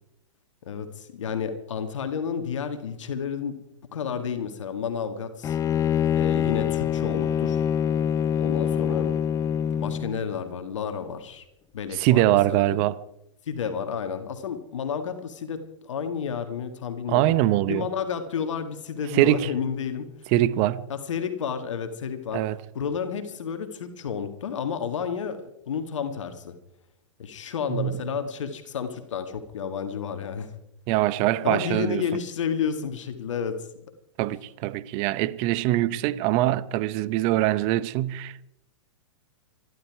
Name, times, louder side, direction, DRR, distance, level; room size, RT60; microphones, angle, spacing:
voice 1, 0.7-3.6 3.9-5.6 6.1-7.7 8.4-9.1 9.7-11.4 11.7-12.8 13.4-17.4 17.7-20.3 20.9-22.4 22.8-26.5 27.2-30.5 31.4-33.7, left 7 dB, 70° left, 1.9 m, -31 dB
Bowed string instrument, 5.4-10.2, left 9 dB, 20° left, 0.5 m, -25 dB
voice 2, 11.9-13.0 17.1-17.9 19.1-19.5 20.3-20.8 22.3-22.6 27.7-28.0 30.9-32.0 34.2-38.5, right 15 dB, 40° right, 0.9 m, -23 dB
25.0 x 12.0 x 4.8 m
hypercardioid pair, 110°, 17 cm